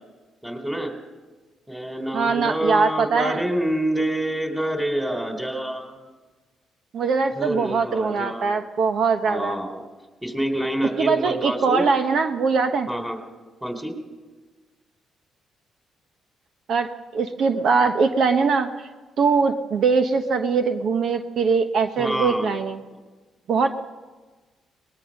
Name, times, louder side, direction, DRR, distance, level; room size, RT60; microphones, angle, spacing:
voice 1, 0.4-0.9 1.7-6.0 7.4-8.5 9.3-9.8 10.2-11.8 12.9-13.2 13.6-13.9 22.0-22.5 23.6-23.7, right 1 dB, 5° right, 5 dB, 3.6 m, -27 dB
voice 2, 2.1-3.4 6.9-9.6 11.0-12.9 16.7-18.7 19.2-22.8 23.5-23.7, right 5 dB, 65° right, 7 dB, 1.1 m, -22 dB
22.0 x 20.0 x 6.5 m, 1.3 s
cardioid pair, 90°, 0 cm